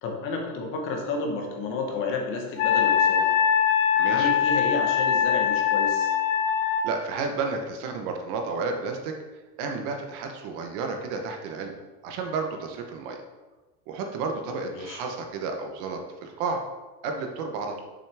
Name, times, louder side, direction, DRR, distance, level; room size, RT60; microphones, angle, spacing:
voice 1, 0.0-3.3 4.1-6.1 14.7-15.0, left 3 dB, 30° left, 2 dB, 1.0 m, -31 dB
Wind instrument woodwind instrument, 2.6-6.9, left 8 dB, 75° left, 0.9 m, -22 dB
voice 2, 4.0-4.3 6.8-9.2 9.6-11.8 12.0-13.2 13.9-16.6 17.0-17.8, right 4 dB, 40° right, 3 dB, 0.8 m, -31 dB
6.9 x 5.8 x 3.3 m, 1.2 s
supercardioid pair, 175°, 41 cm